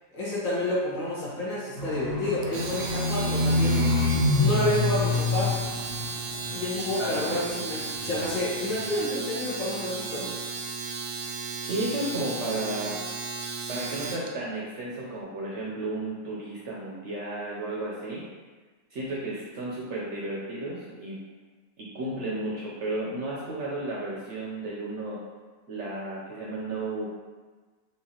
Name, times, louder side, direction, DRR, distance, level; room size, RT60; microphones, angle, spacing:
voice 1, 0.1-3.8 4.4-5.6 6.5-10.3, left 1 dB, 60° left, -7 dB, 1.4 m, -29 dB
Livestock farm animals working animals, 1.8-6.5 6.8-7.5 8.0-8.1, left 2 dB, 90° left, 2.0 m, -26 dB
Domestic sounds home sounds, 2.4-14.3, right 4 dB, 80° right, 1.1 m, -35 dB
voice 2, 11.6-13.0 13.7-18.2 18.9-21.2 21.8-25.2 25.7-27.1, right 2 dB, 60° right, -5 dB, 0.8 m, -33 dB
4.8 x 2.5 x 2.8 m, 1.4 s
omnidirectional pair, 1.6 m